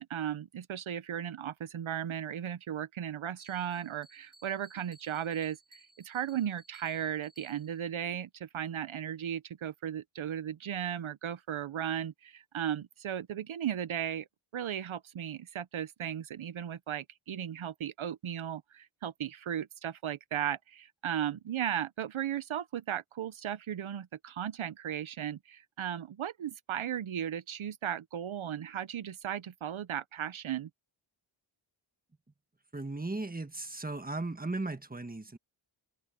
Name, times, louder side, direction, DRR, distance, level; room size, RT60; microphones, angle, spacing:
voice 1, 0.0-14.3 14.5-30.7, right 9 dB, 80° right, 0.7 m, -36 dB
Bell, 3.4-7.9, right 1 dB, 40° left, 6.4 m, -61 dB
voice 2, 32.7-35.4, right 2 dB, 20° right, 1.5 m, -36 dB
open air
wide cardioid pair, 85°, 48 cm